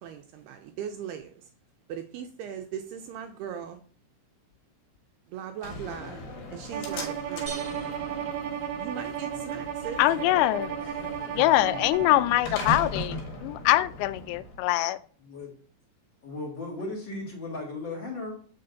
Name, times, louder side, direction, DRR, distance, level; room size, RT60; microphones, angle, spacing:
voice 1, 0.0-1.3 1.9-3.8 5.3-6.2 6.5-7.6 8.8-10.0, right 8 dB, 85° right, 5 dB, 2.4 m, -38 dB
Slam, 5.6-14.6, left 2 dB, 60° left, 2.9 m, -39 dB
Bowed string instrument, 6.7-12.3, right 9 dB, 70° right, 2.3 m, -34 dB
sound 1, 7.5-9.3, right 5 dB, 50° right, 1.0 m, -44 dB
voice 2, 10.0-10.7 11.3-15.0, left 16 dB, 85° left, 14 dB, 2.8 m, -23 dB
voice 3, 10.8-11.5 15.2-15.5 16.2-18.3, left 2 dB, 45° left, -2 dB, 1.5 m, -37 dB
7.7 x 6.4 x 4.0 m, 0.43 s
omnidirectional pair, 5.2 m